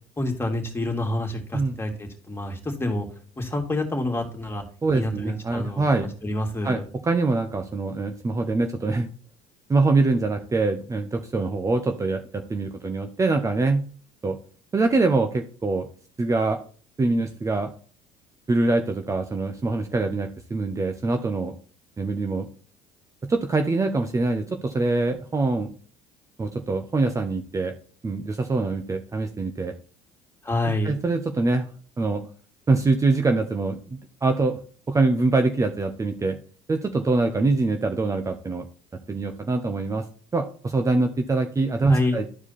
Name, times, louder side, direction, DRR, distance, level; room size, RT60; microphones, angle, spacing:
voice 1, 0.2-3.1 3.4-4.6 4.9-5.9 6.2-6.8 30.4-31.0 41.9-42.2, left 1 dB, 15° left, 2 dB, 2.6 m, -27 dB
voice 2, 4.8-6.1 6.6-9.1 9.7-13.8 14.2-14.4 14.7-15.9 16.2-16.6 17.0-17.7 18.5-21.5 22.0-22.5 23.2-25.7 26.4-27.7 28.0-29.7 30.6-31.7 32.0-32.3 32.7-34.6 34.9-36.4 36.7-38.7 39.1-40.0 40.3-42.3, right 3 dB, 25° right, 6 dB, 1.0 m, -24 dB
12.0 x 4.8 x 4.2 m, 0.43 s
hypercardioid pair, 65°, 14 cm